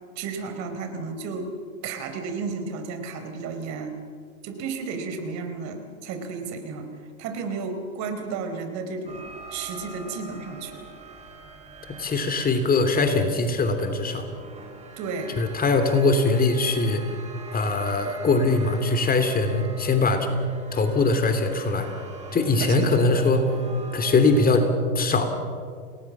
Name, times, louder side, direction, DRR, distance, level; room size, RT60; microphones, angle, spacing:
voice 1, 0.2-1.5 1.8-3.9 4.4-6.9 7.2-10.9 15.0-15.4 22.6-22.9, right 4 dB, 40° right, 7 dB, 4.4 m, -33 dB
sound 1, 9.1-24.6, right 4 dB, 15° right, 6.0 m, -44 dB
voice 2, 12.0-14.2 15.4-17.0 17.5-20.3 20.7-21.9 22.3-23.4 23.9-25.2, left 3 dB, 20° left, 7 dB, 3.0 m, -21 dB
29.0 x 19.5 x 7.4 m, 2.1 s
hypercardioid pair, 110°, 42 cm